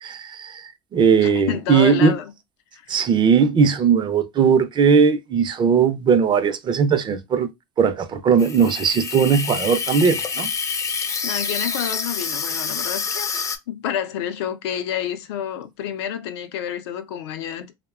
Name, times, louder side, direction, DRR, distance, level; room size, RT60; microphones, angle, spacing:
voice 1, 0.0-2.2 2.9-7.5 7.8-10.5, right 6 dB, 35° right, 0.5 m, -18 dB
voice 2, 1.2-2.3 11.2-13.3 13.7-17.7, left 9 dB, 85° left, 0.5 m, -29 dB
Water tap faucet / Sink (filling or washing), 8.4-13.6, left 5 dB, 25° left, 0.4 m, -27 dB
2.8 x 2.1 x 2.4 m
supercardioid pair, 100°, 14 cm